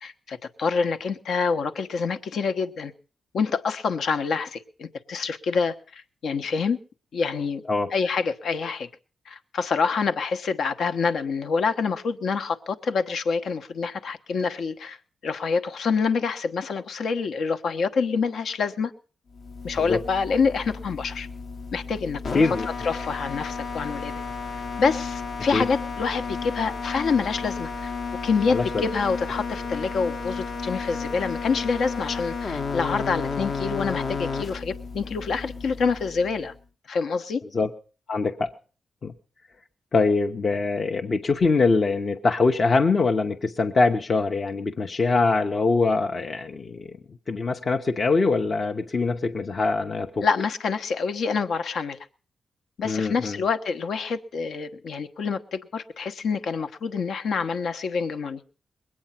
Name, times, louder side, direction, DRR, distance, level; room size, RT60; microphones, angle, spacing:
voice 1, 0.0-2.9 3.3-6.8 7.1-7.6 7.9-8.9 9.3-15.0 15.2-18.9 19.6-21.3 21.7-22.6 22.8-24.1 24.8-27.9 28.2-36.5 36.9-37.4 50.2-52.0 52.8-58.4, left 5 dB, 70° left, 1.2 m, -26 dB
sound 1, 19.3-36.5, left 4 dB, 50° left, 1.1 m, -33 dB
voice 2, 22.3-22.7 25.5-25.6 28.5-28.8 37.5-37.7 38.1-38.5 39.0-39.1 39.9-46.9 47.3-50.2 52.8-53.4, left 3 dB, 35° left, 0.8 m, -23 dB
22.0 x 8.8 x 5.8 m
wide cardioid pair, 175°, 0 cm